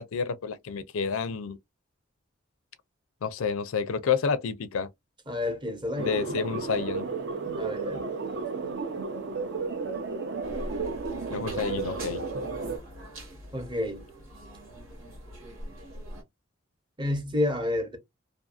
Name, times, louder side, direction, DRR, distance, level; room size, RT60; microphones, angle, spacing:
voice 1, 0.0-1.6 3.2-4.9 6.0-7.1 11.3-12.2, left 5 dB, 85° left, 0.4 m, -29 dB
voice 2, 5.3-6.1 7.5-8.0 13.5-14.0 17.0-18.0, left 1 dB, 20° right, 0.7 m, -29 dB
sound 1, 6.0-12.8, right 4 dB, 60° right, 0.6 m, -33 dB
sound 2, 10.4-16.2, right 1 dB, 90° right, 1.5 m, -42 dB
2.6 x 2.6 x 2.3 m
head